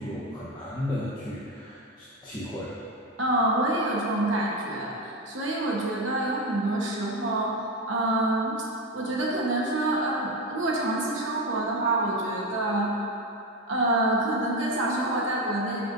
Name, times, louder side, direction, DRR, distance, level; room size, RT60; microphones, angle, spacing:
voice 1, 0.0-2.7, left 1 dB, 20° left, -9 dB, 1.0 m, -34 dB
voice 2, 3.2-7.6 7.9-8.6 8.9-12.9 13.7-15.8, right 2 dB, 70° right, -4 dB, 1.2 m, -26 dB
13.0 x 5.8 x 2.6 m, 2.8 s
head